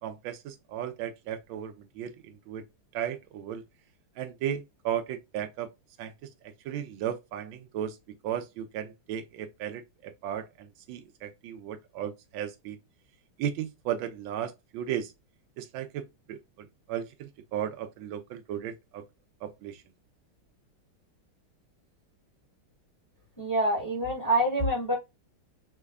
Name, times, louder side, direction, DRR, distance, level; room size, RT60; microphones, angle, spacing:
voice 1, 0.0-2.6 2.9-3.6 4.2-5.7 6.0-6.1 6.4-8.0 8.2-12.8 13.4-15.1 15.6-19.0 19.4-19.8, right 10 dB, 75° right, 1.4 m, -35 dB
voice 2, 23.4-24.9, right 1 dB, 10° left, 1.0 m, -26 dB
5.2 x 2.3 x 2.3 m
omnidirectional pair, 2.4 m